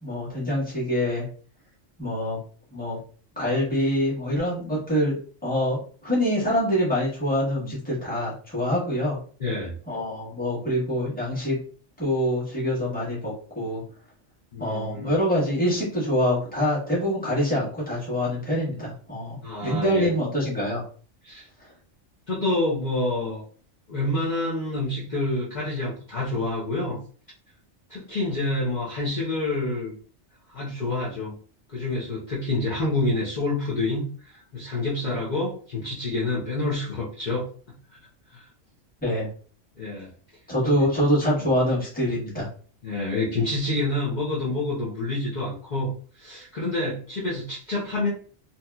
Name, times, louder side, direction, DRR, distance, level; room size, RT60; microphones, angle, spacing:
voice 1, 0.0-1.2 2.0-2.4 2.7-3.0 3.4-5.2 5.4-9.2 9.9-11.6 12.0-13.8 14.6-20.8 39.0-39.3 40.5-42.5, equal, 10° left, -7 dB, 1.2 m, -25 dB
voice 2, 9.4-9.7 14.5-15.1 19.4-20.1 21.2-21.5 22.3-23.4 23.9-27.0 27.9-29.9 30.5-31.3 31.7-37.5 37.9-38.0 38.3-38.5 39.8-40.1 40.6-40.9 41.4-41.5 42.8-48.1, left 2 dB, 45° left, -7 dB, 0.8 m, -28 dB
2.8 x 2.7 x 2.3 m, 0.42 s
omnidirectional pair, 1.2 m